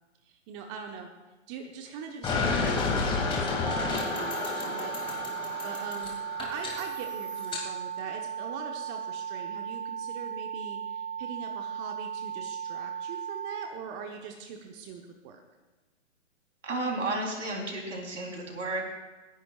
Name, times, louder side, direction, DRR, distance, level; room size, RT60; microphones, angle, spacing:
voice 1, 0.2-1.1 1.5-5.0 5.6-15.4, right 6 dB, 25° right, 4 dB, 1.0 m, -42 dB
sound 1, 2.2-7.6, left 4 dB, 15° left, 2.0 m, -31 dB
sound 2, 3.7-13.7, right 8 dB, 45° right, 1.4 m, -36 dB
voice 2, 16.6-18.9, right 2 dB, 75° right, 1 dB, 3.6 m, -32 dB
28.0 x 10.5 x 2.4 m, 1.2 s
figure-of-eight pair, 130°, 37 cm